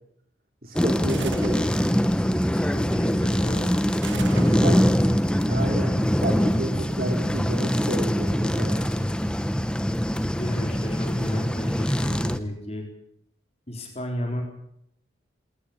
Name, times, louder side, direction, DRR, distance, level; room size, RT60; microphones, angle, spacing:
voice 1, 0.6-1.7 4.3-4.8 5.5-8.8, right 1 dB, 50° right, 3 dB, 3.0 m, -32 dB
sound 1, 0.8-12.4, equal, 5° left, 1.0 m, -23 dB
sound 2, 1.1-1.7 4.0-5.0, right 4 dB, 80° right, 1.8 m, -36 dB
voice 2, 2.5-5.1 10.4-12.9 13.7-14.4, left 1 dB, 35° left, 2 dB, 4.2 m, -34 dB
20.5 x 19.0 x 8.7 m, 0.73 s
head